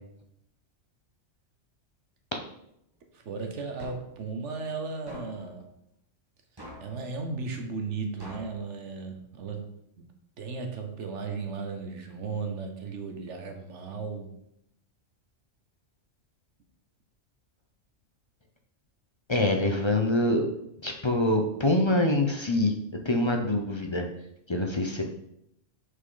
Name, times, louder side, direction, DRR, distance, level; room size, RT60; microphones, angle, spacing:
voice 1, 3.1-5.7 6.8-9.7 10.0-10.1 10.4-14.3, right 4 dB, 70° right, 4 dB, 1.3 m, -35 dB
sound 1, 3.8-4.2 5.1-5.5 6.6-7.0 8.2-8.6, equal, 20° right, 1.5 m, -44 dB
voice 2, 19.3-20.5 20.8-22.7 23.0-24.1 24.5-25.0, left 1 dB, 30° left, 3 dB, 0.5 m, -25 dB
6.4 x 5.6 x 3.8 m, 0.77 s
omnidirectional pair, 1.3 m